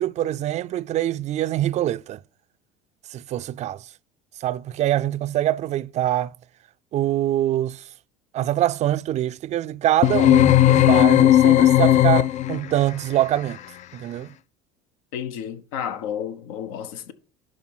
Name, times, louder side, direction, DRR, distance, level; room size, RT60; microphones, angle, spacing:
voice 1, 0.0-2.2 3.1-3.8 4.4-6.3 6.9-7.8 8.3-13.6 13.9-14.3, right 13 dB, 40° right, 0.4 m, -24 dB
sound 1, 10.0-12.7, left 13 dB, 45° left, 0.4 m, -15 dB
voice 2, 15.1-17.1, left 9 dB, 80° left, 0.9 m, -31 dB
11.0 x 3.8 x 6.0 m
supercardioid pair, 90°, 17 cm